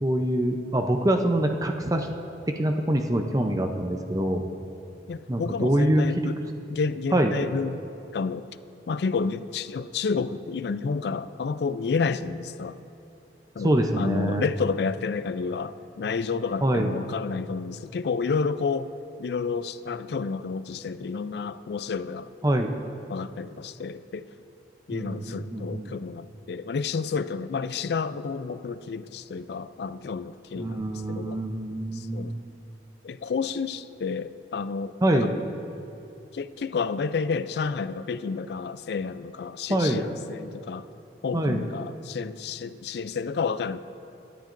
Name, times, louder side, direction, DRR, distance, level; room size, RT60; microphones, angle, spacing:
voice 1, 0.0-2.1 2.6-4.4 5.3-6.3 7.1-7.3 13.6-14.4 16.6-16.9 22.4-22.8 24.9-26.0 30.6-32.5 35.0-35.4 39.7-40.1 41.3-41.7, right 1 dB, 20° right, 4 dB, 0.6 m, -25 dB
voice 2, 5.1-6.4 6.7-7.8 8.1-8.5 8.9-12.8 13.5-18.9 19.2-22.3 23.1-24.3 24.9-31.5 31.9-32.4 33.0-35.3 36.3-40.9 41.2-43.8, left 5 dB, 60° left, 14 dB, 0.4 m, -30 dB
22.0 x 10.0 x 2.6 m, 2.8 s
head